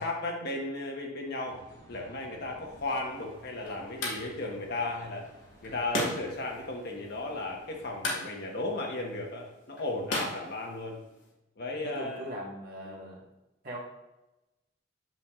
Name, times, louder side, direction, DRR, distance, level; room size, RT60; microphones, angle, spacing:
voice 1, 0.0-1.6 1.9-5.3 5.6-11.0 11.6-12.2 12.8-13.0, left 2 dB, 55° left, 0 dB, 1.3 m, -35 dB
sound 1, 1.4-8.0, equal, 20° left, 2.1 m, -55 dB
sound 2, 2.8-11.3, left 2 dB, 75° left, 2.1 m, -39 dB
voice 2, 11.8-13.2 13.6-13.8, equal, 50° right, -3 dB, 1.8 m, -40 dB
7.5 x 7.1 x 2.5 m, 0.99 s
head